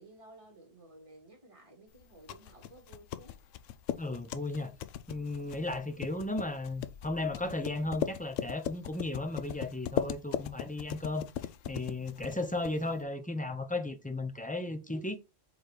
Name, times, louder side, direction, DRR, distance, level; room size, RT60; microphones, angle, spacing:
voice 1, 0.0-3.4 12.2-12.7 14.9-15.2, right 2 dB, 25° right, 2.6 m, -55 dB
sound 1, 2.0-13.0, left 10 dB, 80° left, 0.9 m, -39 dB
voice 2, 4.0-4.7 5.1-11.3 11.7-15.2, left 2 dB, 10° left, 0.6 m, -35 dB
4.6 x 4.6 x 5.0 m
omnidirectional pair, 1.3 m